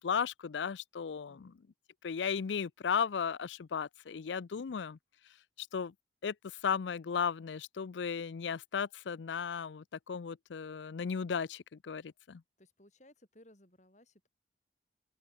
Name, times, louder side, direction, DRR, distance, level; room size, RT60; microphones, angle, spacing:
voice 1, 0.0-1.5 2.0-5.0 5.6-5.9 6.2-12.4, left 6 dB, 90° left, 0.5 m, -35 dB
voice 2, 1.3-1.6 12.6-14.3, left 1 dB, 40° left, 6.5 m, -61 dB
open air
head